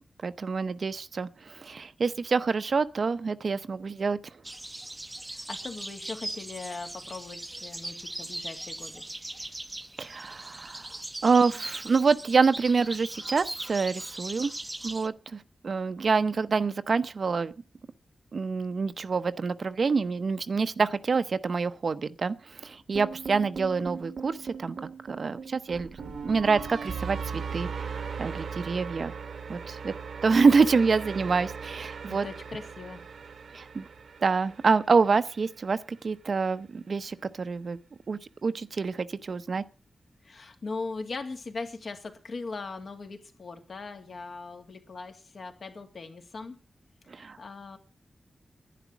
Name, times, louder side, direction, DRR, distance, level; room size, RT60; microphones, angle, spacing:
voice 1, 0.2-4.2 10.0-10.9 11.2-14.5 14.8-17.5 18.3-24.8 25.1-25.9 26.2-29.1 29.5-29.9 30.2-32.3 33.5-33.8 34.2-37.8 38.1-39.6 47.1-47.4, right 4 dB, 55° right, 0.8 m, -26 dB
sound 1, 4.4-15.1, right 1 dB, 15° right, 0.8 m, -39 dB
voice 2, 5.3-9.0 32.1-33.0 40.2-46.6 47.1-47.8, left 3 dB, 60° left, 2.4 m, -40 dB
sound 2, 23.0-35.2, right 5 dB, 80° right, 1.3 m, -38 dB
11.0 x 10.0 x 7.2 m
wide cardioid pair, 145°, 0 cm